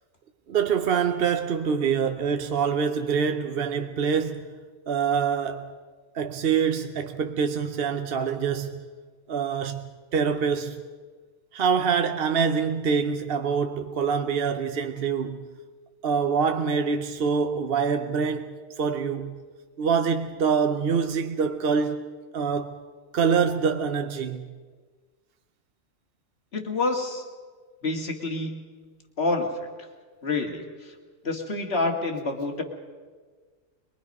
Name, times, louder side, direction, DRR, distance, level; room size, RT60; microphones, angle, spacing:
voice 1, 0.5-4.6 4.9-5.7 6.1-8.9 9.3-10.8 11.5-15.5 16.0-19.4 19.8-22.8 23.1-24.5, right 6 dB, 55° right, 0.9 m, -25 dB
voice 2, 26.5-27.2 27.8-28.6 29.2-29.5 30.2-30.9 31.2-32.6, left 3 dB, 55° left, 2.2 m, -27 dB
23.5 x 22.0 x 5.4 m
omnidirectional pair, 1.3 m